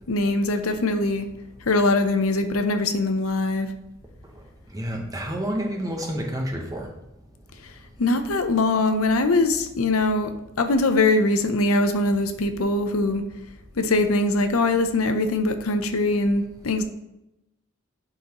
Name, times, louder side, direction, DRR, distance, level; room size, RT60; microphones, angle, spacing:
voice 1, 0.1-1.3 1.6-3.7 7.6-10.3 10.6-13.2 13.8-16.8, left 2 dB, 85° left, 0.7 m, -22 dB
voice 2, 4.7-6.9, equal, 15° right, 1.0 m, -29 dB
11.0 x 4.0 x 3.0 m
head